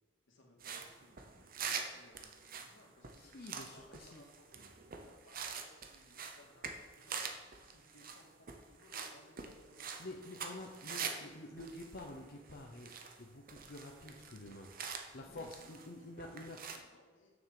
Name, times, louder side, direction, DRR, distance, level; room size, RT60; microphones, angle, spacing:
voice 1, 0.3-4.5 5.0-10.2 10.9-11.4 15.2-17.3, left 1 dB, 85° left, 0 dB, 1.9 m, -64 dB
sound 1, 0.6-11.3 11.6-13.2 13.5-15.9 16.2-16.8, right 6 dB, 50° right, 0.9 m, -45 dB
voice 2, 3.1-4.2 10.0-14.8 15.1-16.6, left 1 dB, 50° left, 1 dB, 0.8 m, -49 dB
7.1 x 6.5 x 6.6 m, 1.4 s
head